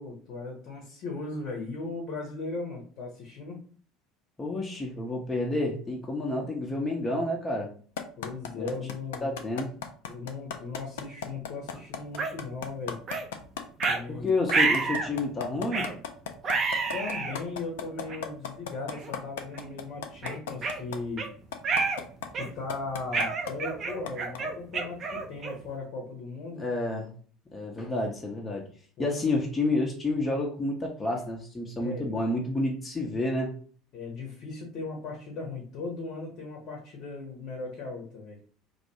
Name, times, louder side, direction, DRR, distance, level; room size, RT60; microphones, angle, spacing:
voice 1, 0.0-3.6 8.2-9.4 10.1-13.0 13.9-14.3 16.9-21.3 22.3-26.7 29.0-29.2 31.8-32.1 33.9-38.4, left 3 dB, 50° left, 0 dB, 0.7 m, -37 dB
voice 2, 4.4-7.7 8.5-8.7 9.2-9.7 14.1-15.9 26.6-27.1 27.5-28.7 29.0-33.5, left 2 dB, 20° left, -1 dB, 0.6 m, -29 dB
sound 1, 8.0-13.9 14.3-21.0 21.5-22.3 22.7-23.5 24.1-24.4, left 7 dB, 65° left, 0.3 m, -35 dB
sound 2, 12.2-12.3 13.1-13.3 13.8-14.0 14.5-15.1 15.7-15.9 16.4-17.4 18.1-18.2 18.9-19.1 19.5-19.7 20.2-21.3 21.6-22.0 22.3-22.7 23.1-25.7, right 4 dB, 35° right, 0.5 m, -29 dB
2.3 x 2.2 x 2.8 m, 0.44 s
figure-of-eight pair, 65°, 0 cm